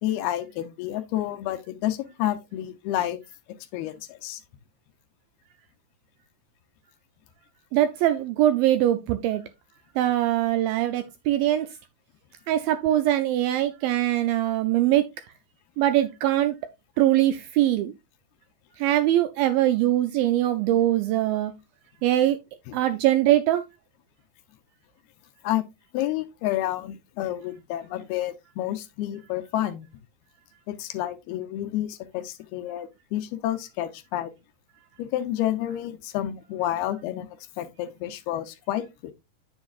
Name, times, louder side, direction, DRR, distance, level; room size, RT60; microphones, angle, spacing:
voice 1, 0.0-3.2 3.7-4.4 25.4-25.6 25.9-29.9 30.7-34.3 35.0-37.3 37.6-38.9, left 13 dB, 80° left, 2.6 m, -29 dB
voice 2, 7.7-9.4 10.0-11.7 12.5-15.1 15.8-16.6 17.0-17.9 18.8-21.5 22.0-22.4 22.7-23.6, right 13 dB, 80° right, 2.1 m, -22 dB
8.7 x 7.2 x 2.4 m
omnidirectional pair, 4.6 m